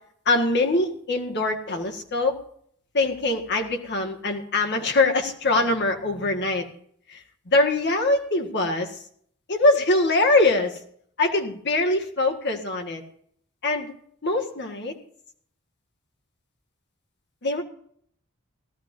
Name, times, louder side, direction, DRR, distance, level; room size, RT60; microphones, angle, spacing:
voice 1, 0.3-2.4 2.9-6.7 7.1-7.2 7.5-9.0 9.5-10.8 11.2-13.0 13.6-13.9 14.2-15.0 17.4-17.6, left 2 dB, 55° left, 3 dB, 1.8 m, -23 dB
18.0 x 13.5 x 2.7 m, 0.64 s
head